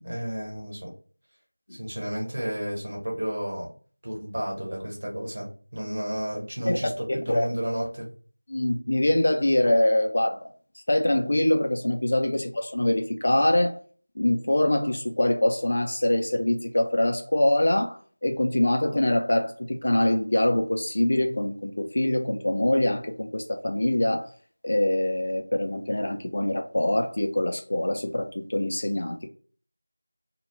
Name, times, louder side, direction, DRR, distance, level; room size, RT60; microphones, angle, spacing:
voice 1, 0.0-0.9 1.7-3.7 4.0-8.1, equal, 55° right, 1.0 m, -32 dB
voice 2, 8.5-10.5 10.9-13.8 14.2-24.3 24.6-29.3, left 1 dB, 45° left, 0.4 m, -24 dB
2.2 x 2.1 x 3.0 m
figure-of-eight pair, 175°, 0 cm